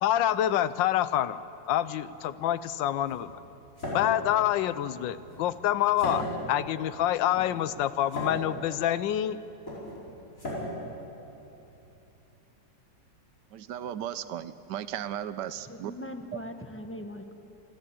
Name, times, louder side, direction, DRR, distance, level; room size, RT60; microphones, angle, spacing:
voice 1, 0.0-1.4 1.7-3.3 3.9-9.4, left 12 dB, 85° left, 16 dB, 1.3 m, -27 dB
sound 1, 2.1-11.9, equal, 45° left, 5.5 m, -38 dB
voice 2, 13.5-15.9, right 10 dB, 75° right, 14 dB, 1.2 m, -36 dB
voice 3, 15.4-17.3, left 1 dB, 10° left, 6 dB, 0.6 m, -41 dB
27.5 x 11.5 x 8.6 m, 2.9 s
omnidirectional pair, 2.0 m